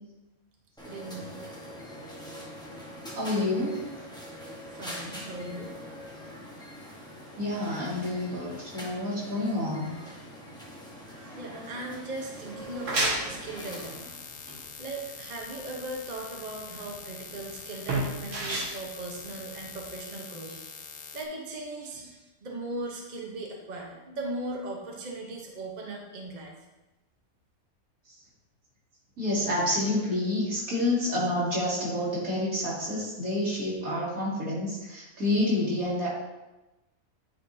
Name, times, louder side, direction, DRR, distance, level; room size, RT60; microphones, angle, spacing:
sound 1, 0.8-14.0, equal, 5° left, 1.0 m, -43 dB
voice 1, 0.8-1.4 4.7-5.7 11.2-14.2 14.8-20.7 21.1-26.5, right 2 dB, 35° right, 0 dB, 0.9 m, -38 dB
voice 2, 3.1-3.8 7.4-9.9 29.2-36.1, left 1 dB, 80° right, -7 dB, 2.5 m, -28 dB
sound 2, 12.6-20.0, right 2 dB, 65° right, 1.6 m, -33 dB
sound 3, 13.6-21.3, left 6 dB, 90° left, 1.2 m, -44 dB
9.7 x 4.3 x 2.7 m, 1.0 s
omnidirectional pair, 1.5 m